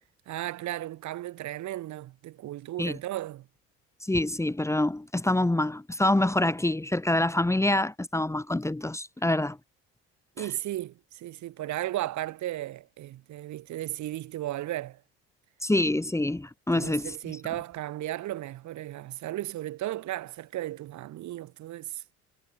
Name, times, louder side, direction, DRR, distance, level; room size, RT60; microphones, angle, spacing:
voice 1, 0.3-3.5 10.4-15.0 16.7-22.0, right 14 dB, 65° right, 7.6 m, -35 dB
voice 2, 4.0-9.6 10.4-10.5 15.6-17.4, left 1 dB, 10° left, 2.3 m, -26 dB
supercardioid pair, 80°, 31 cm